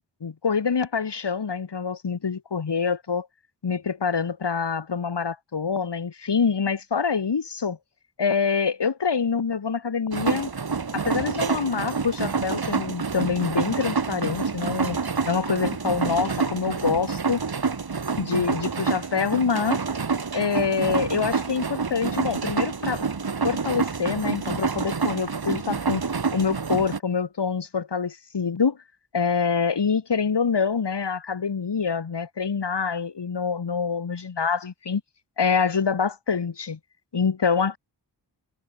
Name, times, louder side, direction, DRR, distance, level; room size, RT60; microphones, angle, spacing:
voice 1, 0.0-3.3 3.6-7.8 8.2-10.5 10.9-15.0 15.2-17.4 18.2-19.8 20.3-23.0 23.4-26.0 26.3-28.8 29.1-35.0 35.4-36.8 37.1-37.8, left 5 dB, 70° left, 4.8 m, -26 dB
sound 1, 10.1-27.0, right 5 dB, 60° right, 4.7 m, -27 dB
wide cardioid pair, 105°, 43 cm